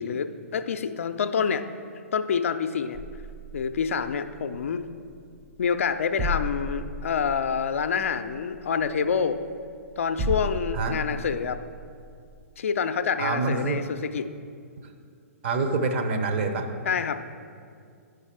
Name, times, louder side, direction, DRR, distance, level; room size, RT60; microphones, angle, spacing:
voice 1, 0.0-1.6 2.1-3.0 3.5-4.8 5.6-9.4 10.0-11.6 12.6-14.3 16.9-17.2, left 6 dB, 60° left, 9 dB, 0.4 m, -27 dB
sound 1, 2.9-12.5, equal, 15° right, 0.5 m, -36 dB
voice 2, 13.2-13.8 15.4-16.7, right 3 dB, 50° right, 5 dB, 0.8 m, -26 dB
9.8 x 4.9 x 4.5 m, 2.3 s
figure-of-eight pair, 115°, 8 cm